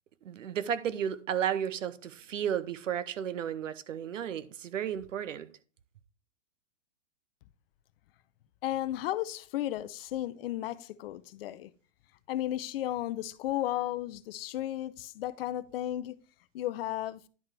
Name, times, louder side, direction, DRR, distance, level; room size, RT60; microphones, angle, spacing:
voice 1, 0.2-5.5, right 9 dB, 80° right, 1.0 m, -33 dB
voice 2, 8.6-11.7 12.3-16.2 16.5-17.2, left 13 dB, 50° left, 0.7 m, -34 dB
10.5 x 5.6 x 3.4 m
hypercardioid pair, 130°, 38 cm